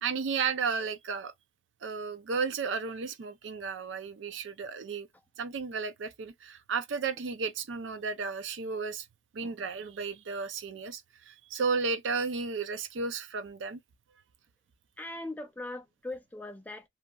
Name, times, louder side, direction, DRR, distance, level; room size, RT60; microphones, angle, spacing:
voice 1, 0.0-1.3 1.8-5.1 5.4-9.1 9.3-13.8, right 5 dB, 75° right, 0.4 m, -33 dB
voice 2, 15.0-16.8, left 2 dB, 10° left, 0.3 m, -40 dB
2.8 x 2.5 x 2.2 m
head